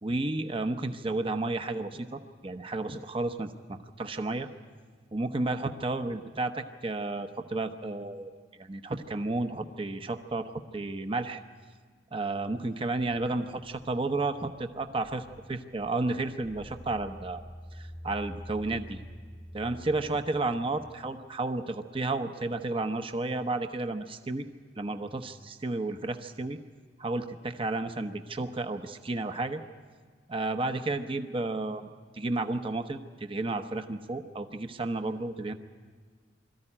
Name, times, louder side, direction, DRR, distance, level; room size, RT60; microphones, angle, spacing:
voice 1, 0.0-4.5 5.1-11.4 12.1-17.4 17.7-19.0 19.5-24.4 24.8-26.6 27.0-29.6 30.3-35.5, right 2 dB, 30° right, 7 dB, 0.8 m, -32 dB
sound 1, 13.0-20.8, equal, 15° left, 1.0 m, -48 dB
22.5 x 14.0 x 9.9 m, 1.6 s
head